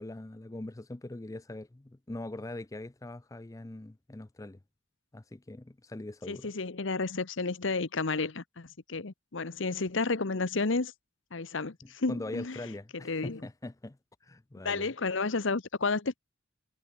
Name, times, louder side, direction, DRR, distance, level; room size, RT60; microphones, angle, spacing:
voice 1, 0.0-4.6 5.1-6.5 11.8-14.9, left 2 dB, 15° left, 0.5 m, -42 dB
voice 2, 6.3-10.9 11.3-12.6 13.0-13.4 14.6-16.2, left 3 dB, 65° left, 1.0 m, -31 dB
head